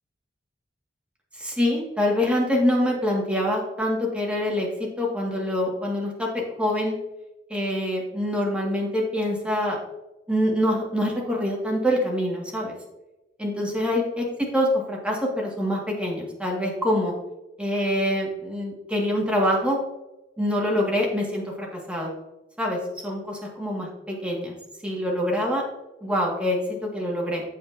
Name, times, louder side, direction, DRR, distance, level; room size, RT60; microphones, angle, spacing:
voice 1, 1.3-7.0 7.5-9.8 10.3-12.8 13.4-14.3 14.5-17.2 17.6-19.8 20.4-22.1 22.6-24.5 24.8-25.6 26.0-27.4, left 1 dB, 5° right, -2 dB, 2.0 m, -25 dB
15.5 x 5.2 x 2.8 m, 0.99 s
head